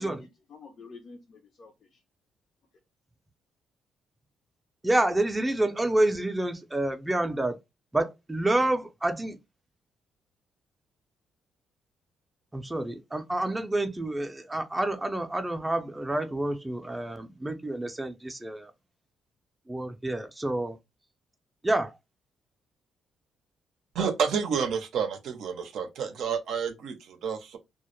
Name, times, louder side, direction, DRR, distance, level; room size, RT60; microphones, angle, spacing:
voice 1, 0.0-2.0, left 4 dB, 55° left, 0.5 m, -48 dB
voice 2, 4.8-7.6 7.9-9.4 12.5-18.7 19.7-20.8 21.6-22.0, right 1 dB, 15° right, 0.4 m, -28 dB
voice 3, 23.9-27.6, right 6 dB, 75° right, 0.5 m, -30 dB
2.2 x 2.0 x 2.9 m
cardioid pair, 90°, 0 cm